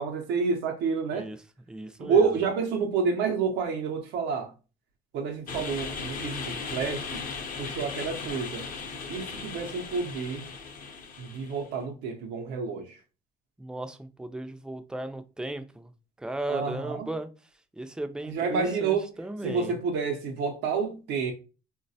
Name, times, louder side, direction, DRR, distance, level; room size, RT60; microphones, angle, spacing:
voice 1, 0.0-1.3 2.0-4.5 5.1-7.3 7.6-8.7 9.1-10.4 11.2-13.0 16.5-17.1 18.2-19.1 19.4-21.3, right 5 dB, 85° right, 0.5 m, -29 dB
voice 2, 1.7-2.3 13.6-15.9 16.2-17.3 17.8-19.7, right 1 dB, 5° right, 0.3 m, -36 dB
sound 1, 5.5-11.7, left 4 dB, 55° left, 0.6 m, -37 dB
3.9 x 2.1 x 2.6 m
cardioid pair, 110°, 17 cm